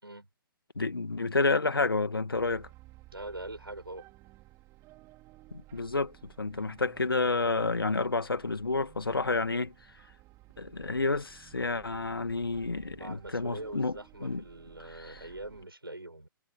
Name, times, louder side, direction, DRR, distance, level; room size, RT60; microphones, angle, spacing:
voice 1, 0.8-2.7 5.5-9.7 10.6-14.4 14.8-15.2, left 3 dB, 75° left, 2.0 m, -30 dB
sound 1, 2.3-15.6, right 19 dB, 25° right, 3.5 m, -55 dB
voice 2, 3.1-4.0 13.0-16.3, right 2 dB, 85° right, 7.0 m, -43 dB
figure-of-eight pair, 120°, 12 cm